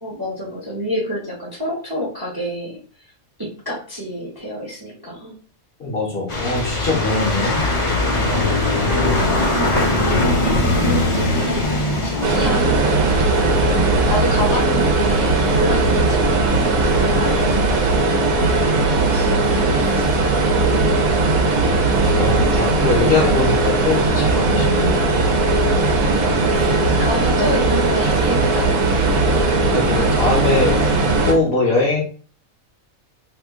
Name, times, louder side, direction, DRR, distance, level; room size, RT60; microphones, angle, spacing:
voice 1, 0.0-2.8 3.4-5.3 9.5-9.7 10.2-13.5 13.8-18.1 18.4-20.2 26.0-28.8, equal, 20° right, -3 dB, 0.6 m, -28 dB
voice 2, 5.8-8.5 10.7-11.2 21.5-25.1 26.5-26.6 29.7-30.8 31.2-32.0, left 3 dB, 50° left, -1 dB, 0.9 m, -23 dB
sound 1, 6.3-17.9, left 2 dB, 30° left, 0.6 m, -22 dB
sound 2, 12.2-31.3, right 3 dB, 85° right, 1.1 m, -18 dB
2.8 x 2.4 x 3.5 m, 0.40 s
omnidirectional pair, 1.4 m